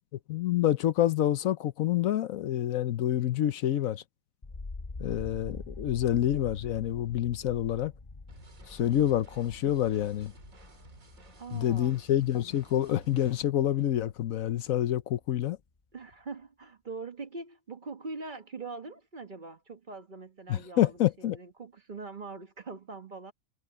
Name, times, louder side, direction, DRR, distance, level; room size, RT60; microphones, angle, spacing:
voice 1, 0.3-4.0 5.0-7.9 8.7-10.3 11.5-15.6 20.5-21.4, left 12 dB, 80° left, 1.1 m, -27 dB
sound 1, 4.4-14.4 14.7-15.4, left 3 dB, 25° left, 0.9 m, -45 dB
sound 2, 8.3-13.4, right 3 dB, 75° right, 3.0 m, -55 dB
voice 2, 8.8-9.1 11.4-12.0 15.9-23.3, right 3 dB, 35° right, 1.3 m, -42 dB
omnidirectional pair, 1.4 m